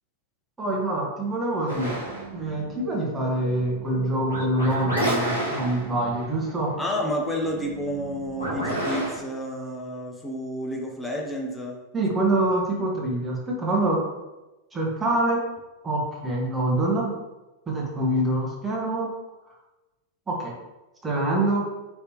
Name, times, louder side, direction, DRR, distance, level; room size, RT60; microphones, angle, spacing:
voice 1, 0.6-2.0 2.3-6.7 11.9-14.0 14.7-15.4 15.8-17.1 17.7-19.1 20.3-20.5 21.0-21.6, right 1 dB, 15° right, -3 dB, 1.2 m, -25 dB
sound 1, 1.7-9.2, right 1 dB, 80° left, 1.0 m, -32 dB
voice 2, 6.8-11.8, equal, 10° left, 0 dB, 0.7 m, -30 dB
4.4 x 3.3 x 2.9 m, 1.1 s
figure-of-eight pair, 90°, 0 cm